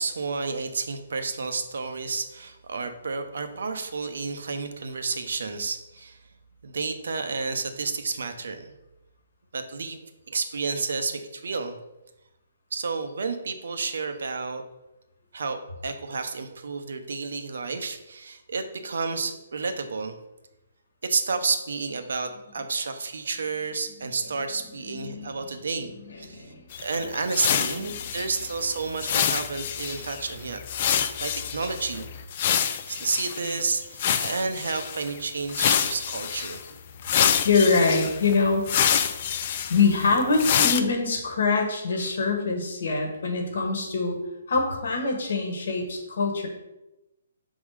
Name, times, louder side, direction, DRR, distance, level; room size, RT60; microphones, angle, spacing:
voice 1, 0.0-6.2 6.6-8.7 9.5-11.8 12.7-14.6 15.3-20.2 21.0-30.6 31.2-32.1 32.9-36.6, right 4 dB, 65° right, 7 dB, 0.7 m, -31 dB
voice 2, 24.9-25.3 26.3-26.6 37.4-38.7 39.7-44.2 44.5-46.5, left 4 dB, 55° left, 3 dB, 1.3 m, -24 dB
sound 1, 26.7-33.6 34.0-35.1 35.5-36.6 37.0-40.8, left 8 dB, 25° left, 0.3 m, -27 dB
6.1 x 3.7 x 4.8 m, 0.96 s
hypercardioid pair, 180°, 0 cm